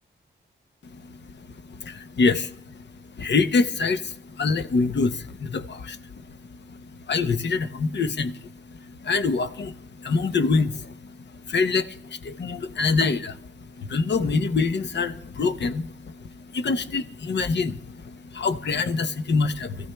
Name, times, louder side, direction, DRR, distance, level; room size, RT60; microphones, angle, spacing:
voice 1, 0.9-19.9, left 4 dB, 60° left, 0.8 m, -26 dB
25.0 x 14.5 x 2.3 m
cardioid pair, 65°, 20 cm